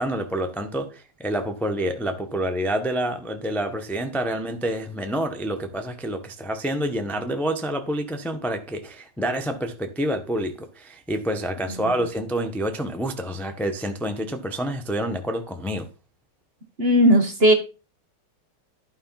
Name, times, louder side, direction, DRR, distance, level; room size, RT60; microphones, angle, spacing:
voice 1, 0.0-15.9, right 1 dB, ahead, 0.5 m, -28 dB
voice 2, 16.8-17.5, equal, 35° right, 1.2 m, -17 dB
12.0 x 4.7 x 5.7 m
omnidirectional pair, 2.4 m